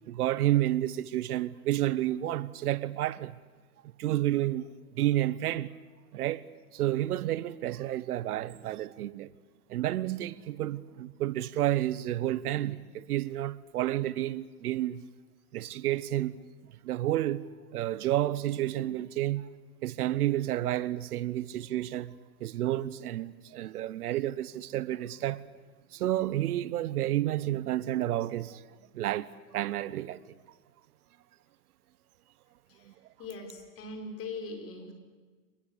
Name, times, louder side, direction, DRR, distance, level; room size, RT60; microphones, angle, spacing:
voice 1, 0.1-3.4 4.0-4.7 4.9-5.7 6.1-6.4 6.7-9.3 9.7-15.0 15.5-16.4 16.8-17.4 17.7-25.4 25.9-28.6 28.9-30.2 32.9-33.0, right 14 dB, 75° right, 1.0 m, -30 dB
voice 2, 33.2-34.9, left 3 dB, 30° left, 5.3 m, -40 dB
24.5 x 20.5 x 8.3 m
hypercardioid pair, 135°, 45 cm